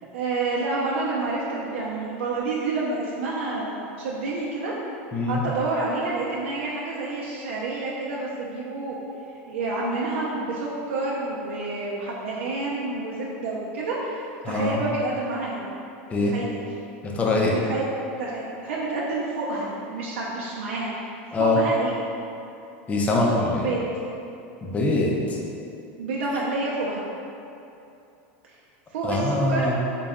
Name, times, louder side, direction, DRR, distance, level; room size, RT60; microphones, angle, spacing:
voice 1, 0.1-4.7 5.3-9.0 9.5-15.7 16.2-16.8 17.6-17.9 18.2-21.1 21.4-22.0 23.6-23.9 26.0-27.0 28.9-29.7, right 3 dB, 90° right, -5 dB, 0.5 m, -29 dB
voice 2, 5.1-5.4 14.4-14.8 16.1-16.3 17.0-17.5 21.3-21.6 22.9-23.6 24.6-25.1 29.0-29.7, left 2 dB, 20° left, -2 dB, 0.5 m, -23 dB
4.0 x 2.2 x 3.5 m, 2.8 s
supercardioid pair, 135°, 6 cm